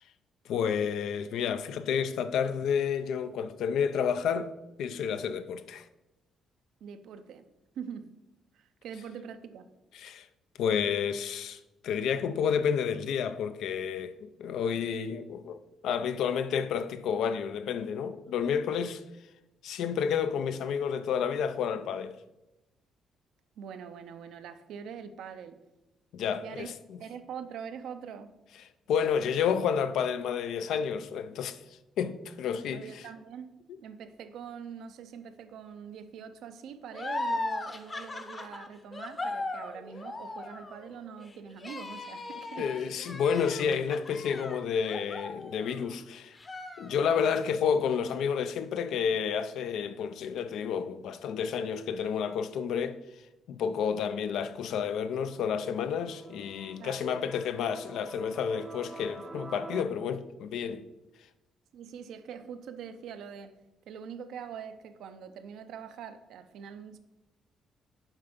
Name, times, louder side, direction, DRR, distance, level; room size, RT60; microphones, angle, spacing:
voice 1, 0.5-4.5 4.8-5.8 9.9-10.3 10.6-19.0 19.6-22.2 26.1-26.7 28.9-31.6 32.0-32.8 42.6-46.4 46.8-53.0 53.5-60.8, left 7 dB, 80° left, 0.4 m, -30 dB
voice 2, 6.8-7.4 7.7-8.1 8.5-9.7 23.6-25.6 26.4-26.7 27.0-28.3 32.7-33.5 33.8-42.9 56.8-57.0 61.7-63.5 63.9-67.0, right 7 dB, 80° right, 0.6 m, -43 dB
sound 1, 36.9-46.0 46.4-47.4, left 2 dB, 30° left, 0.8 m, -38 dB
sound 2, 54.3-59.8, right 3 dB, 20° right, 0.6 m, -48 dB
7.3 x 4.4 x 5.1 m
cardioid pair, 90°, 0 cm